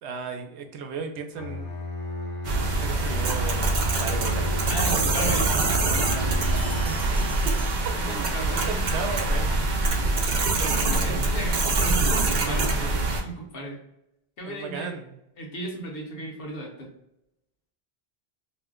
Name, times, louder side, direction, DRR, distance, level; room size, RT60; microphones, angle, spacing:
voice 1, 0.0-1.8 2.7-5.1 6.8-7.3 7.6-7.7 8.1-9.5 10.3-11.3 12.3-13.1 14.4-15.2, right 5 dB, 90° right, 5 dB, 0.9 m, -36 dB
Bowed string instrument, 1.4-7.0, left 3 dB, 40° left, 0.6 m, -32 dB
sound 1, 2.4-13.2, right 3 dB, 55° right, 0.6 m, -24 dB
voice 2, 4.6-7.4 8.0-9.0 11.0-12.7 13.2-13.8 14.4-14.9 15.4-16.9, right 1 dB, 65° left, 0 dB, 1.0 m, -36 dB
Bell, 6.4-8.6, right 1 dB, 10° right, 0.4 m, -43 dB
2.6 x 2.1 x 3.6 m, 0.85 s
omnidirectional pair, 1.1 m